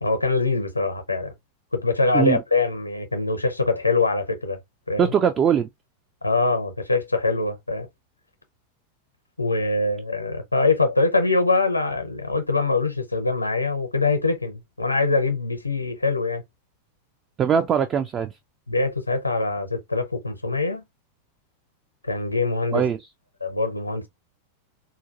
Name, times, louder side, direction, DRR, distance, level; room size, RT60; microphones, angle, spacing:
voice 1, 0.0-1.3 1.7-4.6 4.9-5.1 6.2-7.9 9.4-16.4 18.7-20.8 22.1-22.8 23.4-24.1, left 3 dB, 80° left, 0.6 m, -23 dB
voice 2, 5.0-5.7 17.4-18.3 22.7-23.0, right 7 dB, 25° right, 0.3 m, -21 dB
3.8 x 2.5 x 2.4 m
figure-of-eight pair, 90°, 0 cm